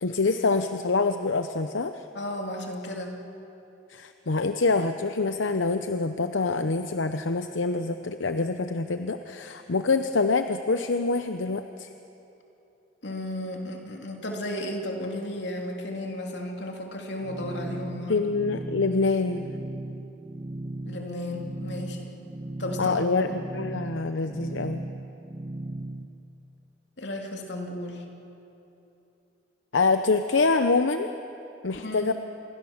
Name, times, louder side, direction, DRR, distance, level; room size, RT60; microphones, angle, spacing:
voice 1, 0.0-2.0 3.9-11.9 18.1-19.5 22.8-24.8 29.7-31.1 31.6-32.1, left 3 dB, 90° left, 8 dB, 0.8 m, -25 dB
voice 2, 2.1-3.2 13.0-18.3 20.9-22.2 22.6-23.2 27.0-28.1 31.8-32.1, left 1 dB, 70° left, 2 dB, 2.9 m, -34 dB
sound 1, 17.2-26.1, right 1 dB, 30° right, 0.7 m, -37 dB
27.5 x 22.5 x 7.2 m, 3.0 s
head